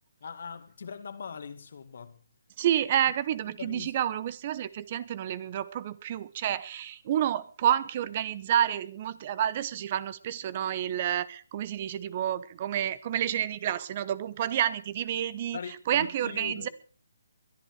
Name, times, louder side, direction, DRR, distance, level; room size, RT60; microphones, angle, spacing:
voice 1, 0.2-2.2 3.6-3.9 15.5-16.7, left 6 dB, 60° left, 2.0 m, -41 dB
voice 2, 2.6-15.6 15.9-16.7, right 10 dB, 35° right, 0.8 m, -29 dB
22.0 x 11.0 x 4.8 m
hypercardioid pair, 155°, 0 cm